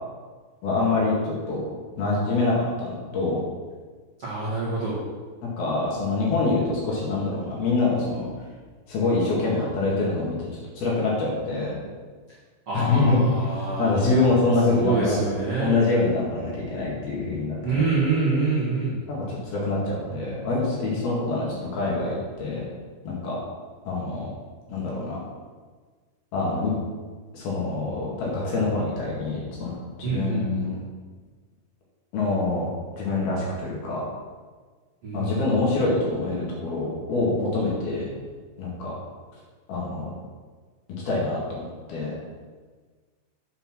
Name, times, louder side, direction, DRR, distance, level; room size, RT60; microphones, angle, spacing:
voice 1, 0.6-1.6 2.0-3.4 5.6-8.3 8.9-10.5 10.8-11.8 12.7-13.2 13.6-15.2 15.6-17.8 19.1-21.5 21.7-22.7 23.0-23.4 23.9-24.3 24.7-25.2 26.3-26.7 27.3-29.7 30.0-30.8 32.1-32.7 32.9-34.0 35.1-38.1 38.6-38.9 39.7-40.1 41.1-42.2, left 3 dB, 60° left, -5 dB, 3.5 m, -25 dB
voice 2, 4.2-5.0 12.7-14.0 14.7-15.7 17.6-19.0 30.0-30.6 35.0-35.4, right 4 dB, 55° right, -9 dB, 1.7 m, -26 dB
7.9 x 5.7 x 6.0 m, 1.5 s
omnidirectional pair, 5.5 m